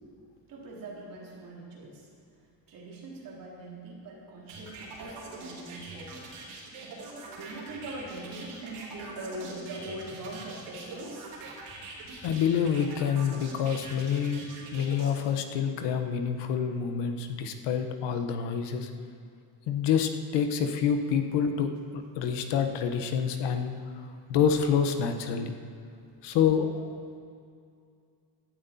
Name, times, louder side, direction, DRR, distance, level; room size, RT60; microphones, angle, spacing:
voice 1, 0.5-2.1 2.7-6.2 7.3-11.3 24.0-24.1, right 2 dB, 50° right, -3 dB, 3.4 m, -42 dB
sound 1, 4.5-15.1, right 3 dB, 75° right, 3.9 m, -43 dB
voice 2, 12.2-14.4 14.7-18.9 19.7-23.7 24.3-25.5 26.2-27.0, left 7 dB, 75° left, 7 dB, 1.3 m, -27 dB
17.0 x 12.5 x 4.3 m, 2.3 s
cardioid pair, 165°, 42 cm